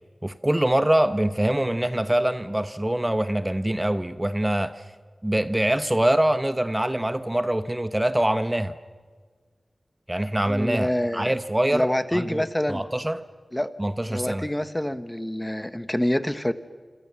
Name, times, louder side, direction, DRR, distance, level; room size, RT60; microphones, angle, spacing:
voice 1, 0.2-4.8 5.2-8.7 10.1-13.3 13.8-14.4, right 1 dB, 15° right, 1.0 m, -24 dB
voice 2, 10.4-11.3 11.7-12.8 13.5-13.7 14.1-16.5, left 1 dB, 10° left, 1.2 m, -26 dB
28.0 x 26.5 x 7.1 m
wide cardioid pair, 60°, 0 cm